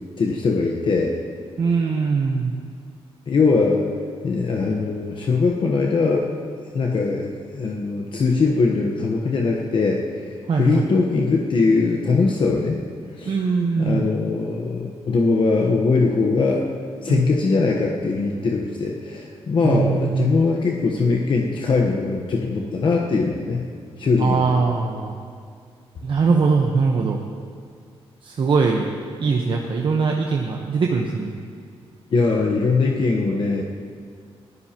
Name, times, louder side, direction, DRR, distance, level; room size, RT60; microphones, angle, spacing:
voice 1, 0.2-1.1 3.3-3.9 4.2-6.3 6.7-12.8 13.1-13.3 13.8-16.6 17.0-23.6 24.0-24.4 32.1-33.6, left 4 dB, 50° left, -1 dB, 1.1 m, -21 dB
voice 2, 1.6-2.5 10.5-10.9 13.3-14.1 17.1-17.2 19.6-20.3 24.2-25.2 26.0-27.2 28.2-28.9 29.2-31.3, right 4 dB, 55° right, 0 dB, 1.1 m, -21 dB
22.5 x 15.0 x 3.0 m, 2.1 s
wide cardioid pair, 120°, 10 cm